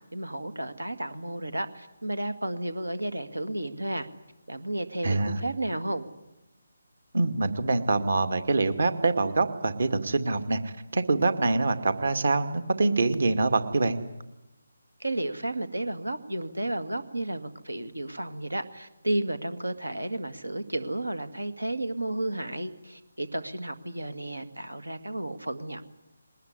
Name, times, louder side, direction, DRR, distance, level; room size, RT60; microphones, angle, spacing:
voice 1, 0.1-4.1 4.5-6.1 15.0-25.8, right 1 dB, 90° right, 11 dB, 2.1 m, -32 dB
voice 2, 5.0-5.4 7.1-14.0, right 3 dB, 65° right, 9 dB, 2.2 m, -25 dB
22.0 x 19.5 x 9.7 m, 0.94 s
figure-of-eight pair, 150°, 0 cm